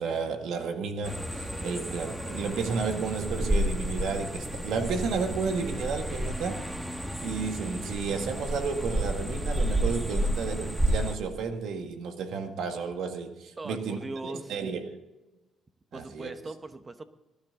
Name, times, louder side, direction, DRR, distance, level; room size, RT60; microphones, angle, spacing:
voice 1, 0.0-6.7 7.2-15.0 15.9-16.3, right 5 dB, 80° right, 6 dB, 1.9 m, -32 dB
sound 1, 1.0-11.2, equal, 5° right, 1.7 m, -31 dB
voice 2, 13.6-14.5 15.9-17.0, right 2 dB, 25° right, 9 dB, 1.2 m, -39 dB
19.0 x 11.5 x 3.8 m, 1.1 s
cardioid pair, 90°, 0 cm